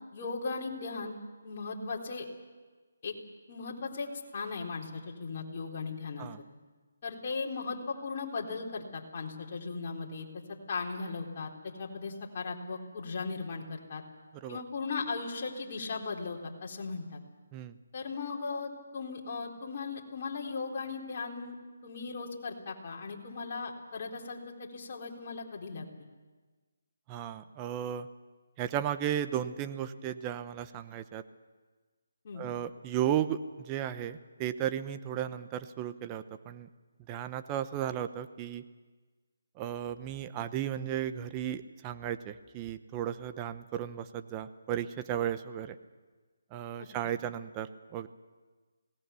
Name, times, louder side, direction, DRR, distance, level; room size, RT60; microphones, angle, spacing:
voice 1, 0.1-1.2 1.4-2.3 3.0-3.1 3.5-6.3 7.0-10.3 10.7-11.5 11.8-14.0 14.5-17.2 17.9-21.6 21.8-25.9 32.2-32.4 46.8-46.9, left 4 dB, 40° left, -1 dB, 3.8 m, -37 dB
voice 2, 27.1-28.1 28.6-31.2 32.4-36.7 37.1-38.6 39.6-45.7 46.5-48.1, right 10 dB, 20° right, 11 dB, 0.9 m, -35 dB
26.5 x 18.0 x 7.0 m, 1.4 s
figure-of-eight pair, 155°, 0 cm